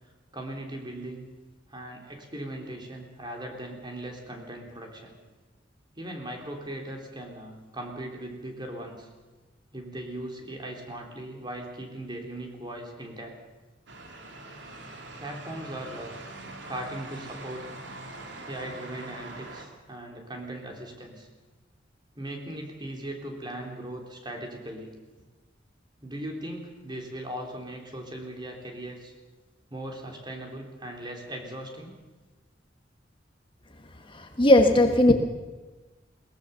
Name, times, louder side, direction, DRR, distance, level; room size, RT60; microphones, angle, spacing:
voice 1, 0.3-1.3 1.7-5.2 6.0-9.1 9.7-13.4 15.2-16.2 16.7-17.7 18.5-21.3 22.2-24.9 26.0-29.1 29.7-31.9, right 1 dB, 25° right, 2 dB, 3.6 m, -38 dB
sound 1, 13.9-19.6, right 2 dB, 75° right, 2.9 m, -43 dB
voice 2, 34.1-35.1, left 1 dB, 30° left, 5 dB, 1.4 m, -18 dB
21.5 x 18.5 x 7.0 m, 1.2 s
head